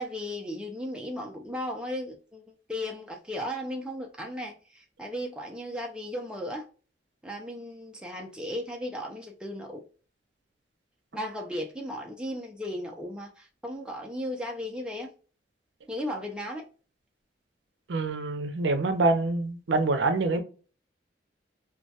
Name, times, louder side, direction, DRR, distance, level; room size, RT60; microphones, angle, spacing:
voice 1, 0.0-6.7 7.2-9.8 11.1-15.1 15.9-16.7, equal, 5° right, 0.3 m, -36 dB
voice 2, 17.9-20.4, right 3 dB, 75° right, 0.5 m, -25 dB
2.2 x 2.1 x 2.6 m
head